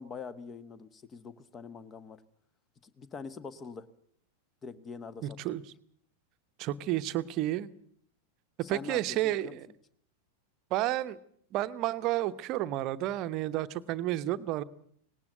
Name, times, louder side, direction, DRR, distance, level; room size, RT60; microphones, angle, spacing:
voice 1, 0.0-2.2 2.8-3.9 4.6-5.4 8.6-9.6, left 5 dB, 25° left, 16 dB, 1.3 m, -44 dB
voice 2, 5.2-5.6 6.6-7.7 8.6-9.7 10.7-11.2 11.5-14.6, right 14 dB, 40° right, 13 dB, 0.9 m, -31 dB
19.0 x 18.0 x 7.9 m, 0.65 s
figure-of-eight pair, 90°, 0 cm